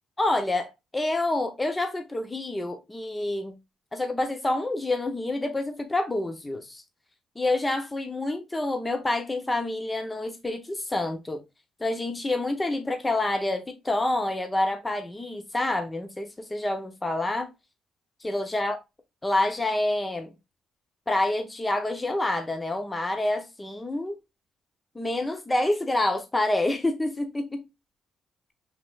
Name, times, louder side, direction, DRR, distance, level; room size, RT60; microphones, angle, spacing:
voice 1, 0.2-3.6 3.9-6.8 7.4-11.4 11.8-17.5 18.2-18.8 19.2-20.3 21.1-24.2 24.9-27.6, left 2 dB, 15° left, 0.7 m, -27 dB
5.8 x 3.5 x 2.4 m
cardioid pair, 90°, 0 cm